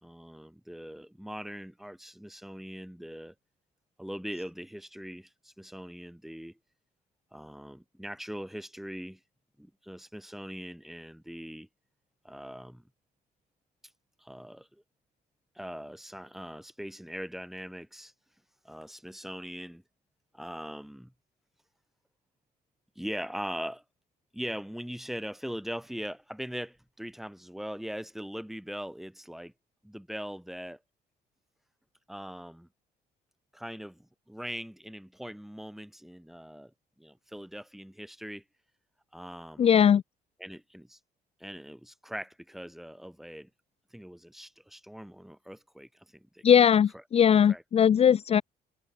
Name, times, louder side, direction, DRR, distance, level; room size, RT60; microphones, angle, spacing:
voice 1, 0.0-3.3 4.0-6.6 7.3-9.2 9.6-11.7 12.2-12.8 14.2-14.8 15.5-18.1 18.6-19.8 20.3-21.1 22.9-23.8 24.3-29.5 29.8-30.8 32.1-32.7 33.5-36.7 37.0-38.4 39.1-39.7 40.4-41.0 41.4-43.5 43.9-46.4 46.9-47.0 47.5-47.6, equal, ahead, 4.8 m, -41 dB
voice 2, 39.6-40.0 46.4-48.4, left 8 dB, 35° left, 0.7 m, -20 dB
cardioid pair, 110°, 17 cm